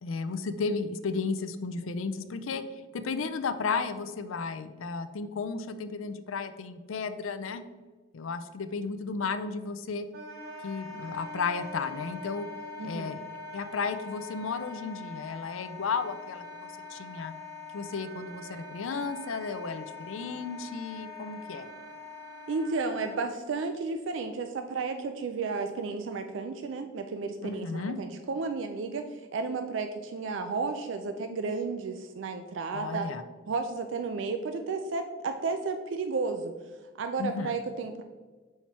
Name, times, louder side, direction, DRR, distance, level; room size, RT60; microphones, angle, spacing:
voice 1, 0.0-2.6 2.9-7.6 8.1-10.1 10.6-12.5 12.8-13.2 13.5-17.3 17.7-21.7 27.4-28.0 32.7-33.2 37.2-37.5, left 4 dB, 80° left, 10 dB, 0.5 m, -34 dB
Wind instrument woodwind instrument, 10.1-23.2, left 3 dB, 50° right, 1.0 m, -43 dB
voice 2, 12.8-13.1 22.5-33.1 33.5-36.5 37.0-38.0, right 4 dB, 65° right, 7 dB, 0.4 m, -33 dB
5.8 x 4.3 x 4.6 m, 1.4 s
head